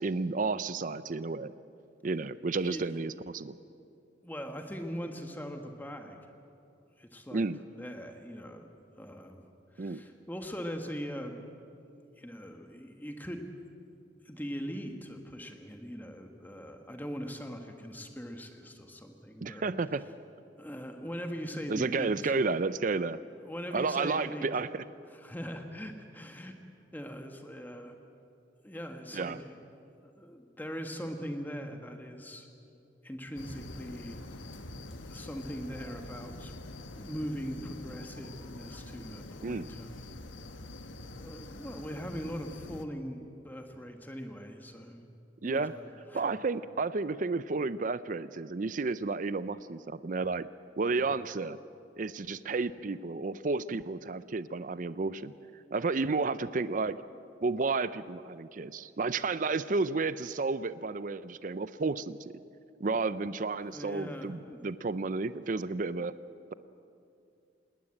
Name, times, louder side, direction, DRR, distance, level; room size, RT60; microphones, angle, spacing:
voice 1, 0.0-1.5 2.0-3.6 7.3-7.6 9.8-10.0 19.4-20.0 21.7-23.2 23.7-24.8 29.1-29.4 39.4-39.7 45.4-45.7 46.1-50.5 50.8-51.6 52.0-55.3 55.7-57.0 57.4-62.3 62.8-66.1, right 3 dB, 45° right, 15 dB, 0.5 m, -32 dB
voice 2, 4.2-6.2 7.0-7.4 7.7-9.4 9.7-11.4 12.2-13.5 14.2-19.6 20.6-22.3 23.4-24.5 25.1-26.5 26.9-28.0 28.6-29.6 30.0-32.5 33.0-34.5 35.1-36.5 37.0-39.9 41.2-45.0 45.4-45.8 46.1-46.3 50.9-51.1 63.6-64.7, equal, 10° left, 5 dB, 1.5 m, -41 dB
sound 1, 33.4-42.9, left 2 dB, 85° left, 1.3 m, -45 dB
19.5 x 19.5 x 8.8 m, 2.6 s
head